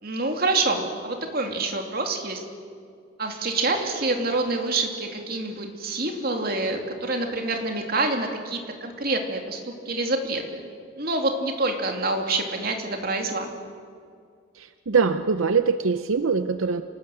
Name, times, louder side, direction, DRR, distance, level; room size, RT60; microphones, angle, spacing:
voice 1, 0.0-2.4 3.2-10.6 10.9-13.5, right 2 dB, 45° right, 3 dB, 2.8 m, -27 dB
voice 2, 14.5-16.8, right 5 dB, 85° right, 10 dB, 0.7 m, -23 dB
27.5 x 19.0 x 7.9 m, 2.2 s
head